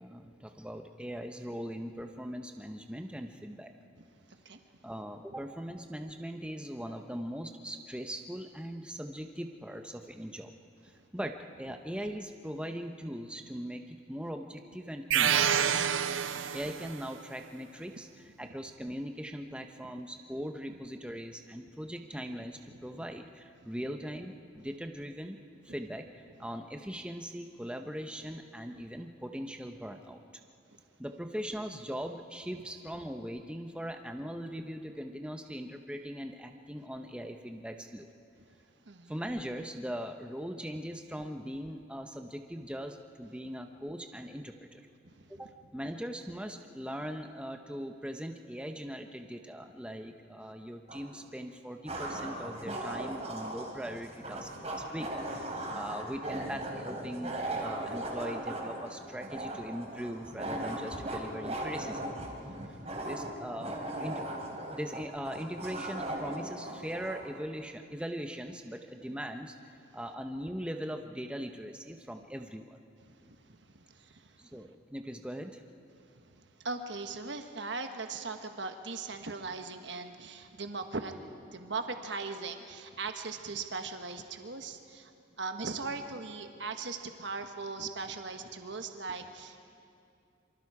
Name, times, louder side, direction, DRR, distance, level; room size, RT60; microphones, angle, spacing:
voice 1, 0.0-3.7 4.8-10.5 10.8-15.9 16.5-25.4 25.6-30.2 31.0-38.1 39.1-44.8 45.3-62.0 62.7-64.3 64.7-72.8 74.4-75.6, equal, 5° right, 5 dB, 0.8 m, -40 dB
sound 1, 15.1-17.0, right 8 dB, 80° right, 0.6 m, -27 dB
sound 2, 50.9-51.0 51.9-67.2, right 1 dB, 35° right, 3.2 m, -38 dB
voice 2, 73.1-74.4 76.1-81.2 81.5-85.1 85.4-89.6, right 4 dB, 65° right, 6 dB, 1.3 m, -39 dB
27.0 x 24.5 x 4.9 m, 2.4 s
head